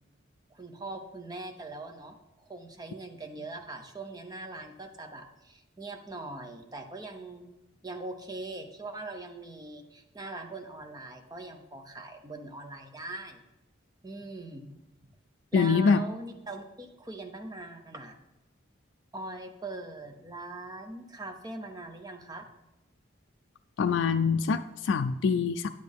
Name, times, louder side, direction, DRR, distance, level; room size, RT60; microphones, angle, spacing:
voice 1, 0.5-7.5 7.8-13.4 14.0-14.7 15.5-18.2 19.1-22.5, right 2 dB, 20° right, 4 dB, 0.7 m, -41 dB
voice 2, 15.5-16.0 23.8-25.7, left 5 dB, 65° left, 7 dB, 0.3 m, -24 dB
9.4 x 8.3 x 3.5 m, 0.99 s
head